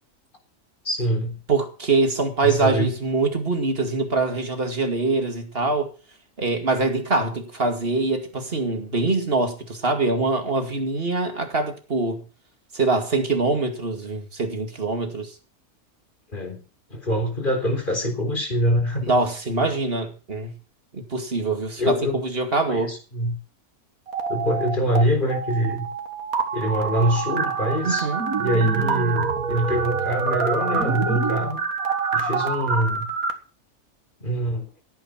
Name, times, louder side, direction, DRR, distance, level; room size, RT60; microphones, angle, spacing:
voice 1, 0.8-1.4 2.4-2.9 16.3-16.6 16.9-19.2 21.8-22.2 22.7-23.4 24.3-25.9 26.5-28.1 28.4-31.6 32.1-33.1 34.2-34.7, equal, 35° left, 4.1 m, -24 dB
voice 2, 1.5-5.9 6.4-12.2 12.7-15.3 19.0-20.5 20.9-22.9 27.8-28.2, right 3 dB, 40° right, 2.4 m, -24 dB
sound 1, 24.1-25.0 25.3-33.3, right 5 dB, 70° right, 2.1 m, -26 dB
16.0 x 9.3 x 6.0 m
omnidirectional pair, 1.6 m